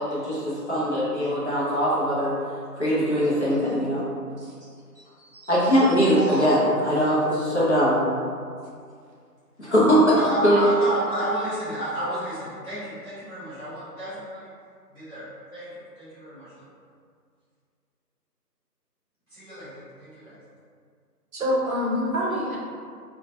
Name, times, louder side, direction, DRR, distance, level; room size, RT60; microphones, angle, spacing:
voice 1, 0.0-2.4 2.7-4.0 5.3-6.6 6.8-8.0 9.6-10.2 10.4-10.6, equal, 45° left, -8 dB, 0.5 m, -21 dB
voice 2, 5.0-6.6 10.1-14.5 14.9-16.6 19.3-20.4, equal, ahead, -25 dB, 0.7 m, -32 dB
voice 3, 21.3-22.6, left 1 dB, 60° right, -4 dB, 0.6 m, -26 dB
2.2 x 2.1 x 2.7 m, 2.1 s
figure-of-eight pair, 155°, 49 cm